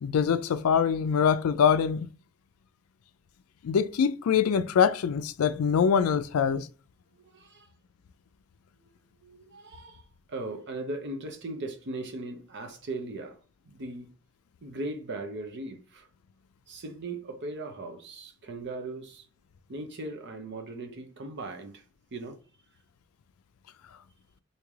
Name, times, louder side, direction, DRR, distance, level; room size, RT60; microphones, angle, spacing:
voice 1, 0.0-2.1 3.6-6.7, left 7 dB, 75° left, 0.4 m, -24 dB
voice 2, 7.1-7.7 8.8-8.9 9.2-13.4 13.6-14.2 14.6-16.1 16.7-19.3 19.7-21.8 22.1-22.4, right 2 dB, 55° right, 0.8 m, -38 dB
3.2 x 2.8 x 3.5 m
head